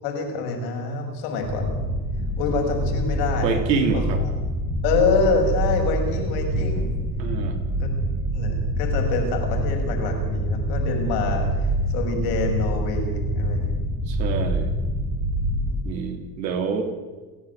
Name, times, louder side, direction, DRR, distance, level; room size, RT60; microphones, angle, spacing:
voice 1, 0.0-1.7 2.4-3.5 3.9-4.0 4.8-6.9 7.8-7.9 8.3-11.7 11.9-13.8 15.7-15.8, left 4 dB, 70° left, 3 dB, 6.7 m, -26 dB
sound 1, 1.4-15.8, right 1 dB, 20° right, 7.7 m, -26 dB
voice 2, 3.4-4.2 7.2-7.6 14.1-14.7 15.8-16.8, right 5 dB, 80° right, 6 dB, 3.6 m, -26 dB
29.5 x 11.0 x 9.6 m, 1.3 s
hypercardioid pair, 75°, 50 cm